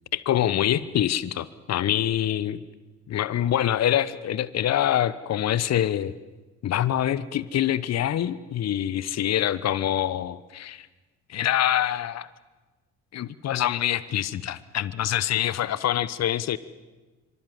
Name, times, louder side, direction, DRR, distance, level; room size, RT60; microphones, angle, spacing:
voice 1, 0.1-2.6 3.1-6.1 6.6-10.9 11.3-12.3 13.1-16.6, left 11 dB, 45° left, 18 dB, 1.0 m, -25 dB
25.5 x 25.0 x 7.7 m, 1.2 s
figure-of-eight pair, 50°, 37 cm